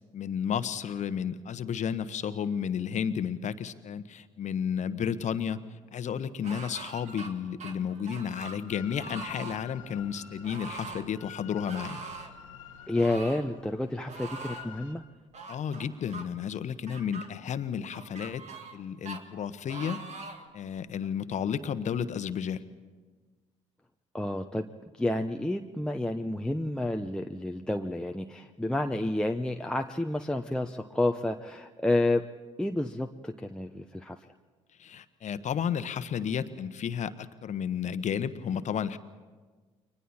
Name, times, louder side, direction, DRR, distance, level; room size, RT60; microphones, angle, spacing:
voice 1, 0.1-5.6 5.9-12.0 15.5-18.4 18.7-20.0 20.5-22.6 34.8-39.0, left 8 dB, 45° left, 12 dB, 1.2 m, -32 dB
sound 1, 6.4-7.3 7.6-8.6 9.0-9.6 10.4-11.0 11.6-12.3 12.9-13.5 14.1-14.7 15.3-16.2 16.9-17.3 17.9-18.8 19.0-19.2 19.7-20.5 21.0-21.1, right 4 dB, 45° right, 2.2 m, -42 dB
Drill, 8.7-14.9, left 8 dB, 85° left, 1.3 m, -49 dB
voice 2, 12.9-15.0 24.1-24.7 25.0-32.2 32.6-34.2, left 1 dB, 5° left, 3 dB, 0.9 m, -30 dB
30.0 x 23.0 x 4.4 m, 1.4 s
hypercardioid pair, 55°, 16 cm